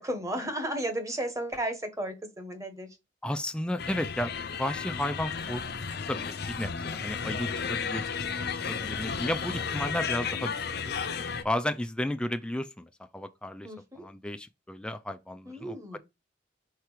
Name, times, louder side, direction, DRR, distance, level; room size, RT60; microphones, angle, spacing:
voice 1, 0.0-2.9 13.6-14.1 15.4-16.0, right 1 dB, 20° right, 1.3 m, -34 dB
voice 2, 3.2-4.3 4.6-5.6 6.1-8.0 8.7-10.6 10.9-11.0 11.4-12.9 13.1-13.7 14.0-15.8, left 1 dB, 5° left, 0.4 m, -33 dB
sound 1, 3.8-11.4, left 6 dB, 60° left, 0.7 m, -33 dB
4.6 x 4.5 x 4.9 m
head